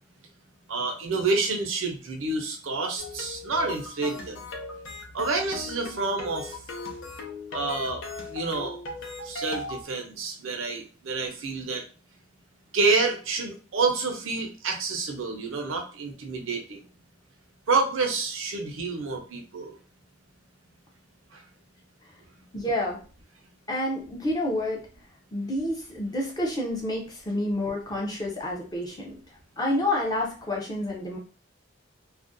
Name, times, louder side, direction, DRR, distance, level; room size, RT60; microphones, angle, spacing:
voice 1, 0.7-4.4 5.1-6.6 7.5-8.0 8.3-8.8 9.2-11.8 12.7-16.8 17.7-19.7 21.3-21.4, right 3 dB, 85° right, 4 dB, 0.6 m, -28 dB
sound 1, 3.0-9.8, left 3 dB, 80° left, 0.6 m, -38 dB
voice 2, 22.5-23.0 23.7-24.8 25.3-29.1 29.6-31.2, left 1 dB, 20° left, -2 dB, 0.5 m, -29 dB
2.4 x 2.1 x 2.5 m, 0.37 s
head